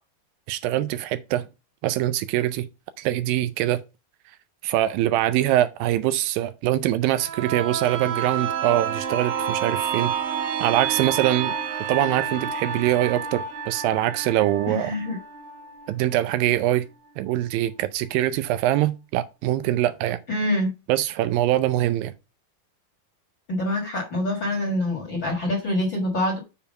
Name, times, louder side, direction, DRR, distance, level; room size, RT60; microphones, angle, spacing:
voice 1, 0.5-1.5 1.8-2.7 3.0-3.8 4.6-10.1 10.6-11.5 11.9-14.9 15.9-16.9 17.2-20.2 20.9-22.1, right 13 dB, 80° right, 2.2 m, -23 dB
sound 1, 7.1-16.7 17.1-17.2, right 8 dB, 65° right, 2.4 m, -29 dB
voice 2, 14.7-15.2 20.3-20.7 23.5-26.4, left 1 dB, 45° left, 1.8 m, -25 dB
7.1 x 4.6 x 5.2 m
omnidirectional pair, 4.2 m